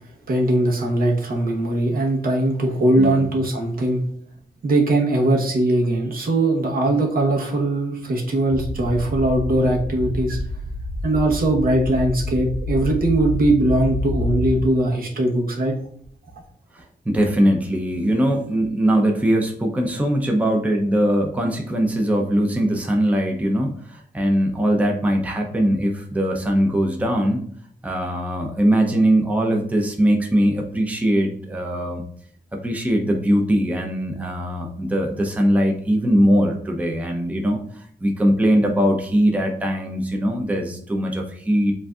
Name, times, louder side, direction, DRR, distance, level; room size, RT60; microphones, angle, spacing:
voice 1, 0.3-4.0 4.6-10.4 11.0-15.7, right 1 dB, 65° right, 0 dB, 1.0 m, -20 dB
sound 1, 8.5-14.7, left 1 dB, 60° left, 0.8 m, -28 dB
voice 2, 16.7-27.4 27.8-32.0 32.5-41.7, equal, 10° right, 1 dB, 0.6 m, -21 dB
7.3 x 2.6 x 2.3 m, 0.62 s
wide cardioid pair, 125°, 16 cm